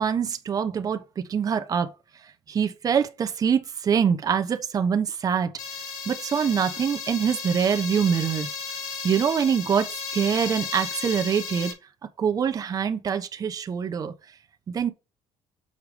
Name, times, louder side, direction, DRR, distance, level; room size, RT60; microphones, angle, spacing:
voice 1, 0.0-1.9 2.5-5.5 6.1-8.5 9.0-11.7 12.2-14.1 14.7-14.9, right 7 dB, 30° right, 1.0 m, -24 dB
sound 1, 5.6-11.7, left 5 dB, 80° left, 2.7 m, -34 dB
6.7 x 4.8 x 5.2 m
cardioid pair, 145°, 12 cm